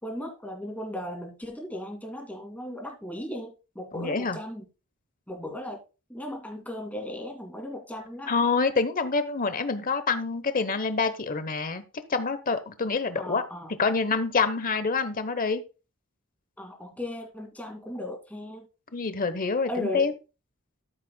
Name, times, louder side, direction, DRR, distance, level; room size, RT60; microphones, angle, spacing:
voice 1, 0.0-4.6 5.3-5.8 6.1-8.3 13.2-13.7 16.6-18.7 19.7-20.1, left 1 dB, 5° left, 1 dB, 2.4 m, -36 dB
voice 2, 3.9-4.4 8.3-11.8 12.1-13.4 13.8-15.6 18.9-20.1, left 4 dB, 40° left, 11 dB, 0.9 m, -26 dB
13.5 x 7.4 x 2.3 m, 0.30 s
head